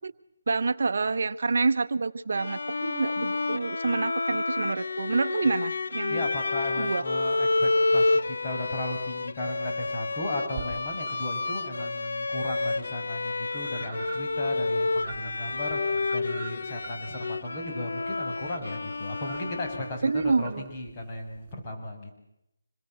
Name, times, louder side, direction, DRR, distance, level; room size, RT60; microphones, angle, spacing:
voice 1, 0.5-6.3 6.8-7.0 20.0-20.6, right 4 dB, 65° right, 12 dB, 0.8 m, -27 dB
Bowed string instrument, 2.3-20.2, left 3 dB, 70° left, 0.9 m, -29 dB
voice 2, 6.1-22.1, left 1 dB, 25° left, 0 dB, 6.0 m, -36 dB
sound 1, 10.5-11.3 11.7-21.5, right 7 dB, 30° right, 7.1 m, -46 dB
26.0 x 22.0 x 7.7 m, 0.84 s
figure-of-eight pair, 165°, 0 cm